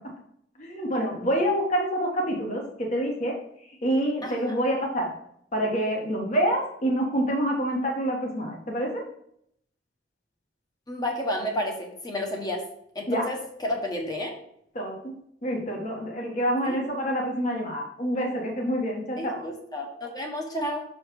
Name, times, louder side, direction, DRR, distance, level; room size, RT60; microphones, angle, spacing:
voice 1, 0.6-3.3 3.8-5.1 5.5-9.0 13.1-13.3 14.7-15.1 15.4-19.4, equal, 40° left, -1 dB, 1.6 m, -27 dB
voice 2, 4.2-4.6 10.9-12.6 12.9-14.4 16.6-16.8 19.2-20.8, left 1 dB, 20° left, 1 dB, 1.3 m, -31 dB
6.3 x 4.3 x 4.9 m, 0.70 s
head